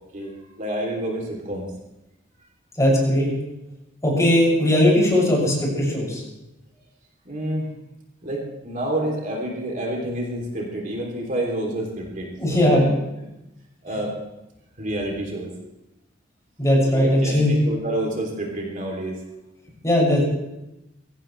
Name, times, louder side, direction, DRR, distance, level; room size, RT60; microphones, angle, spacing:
voice 1, 0.0-1.7 7.2-7.7 8.2-12.9 13.8-14.1 14.8-15.5 16.9-19.2, right 1 dB, 45° right, -1 dB, 3.2 m, -29 dB
voice 2, 2.8-3.3 4.0-6.2 12.4-12.9 16.6-17.5 19.8-20.2, left 1 dB, 15° left, -4 dB, 7.0 m, -18 dB
23.5 x 16.5 x 3.4 m, 0.94 s
head